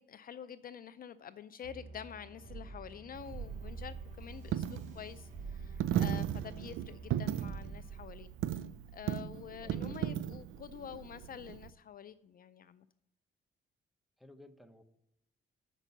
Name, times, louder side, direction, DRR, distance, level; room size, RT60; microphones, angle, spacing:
voice 1, 0.0-8.3 8.9-12.9, left 9 dB, 45° left, 0.4 m, -47 dB
sound 1, 1.6-11.1, right 4 dB, 40° right, 4.3 m, -48 dB
Coin (dropping), 3.1-11.7, right 11 dB, 80° right, 0.5 m, -37 dB
voice 2, 9.6-10.0 14.2-14.8, left 1 dB, ahead, 0.9 m, -55 dB
7.9 x 6.0 x 6.9 m
cardioid pair, 90°, 20 cm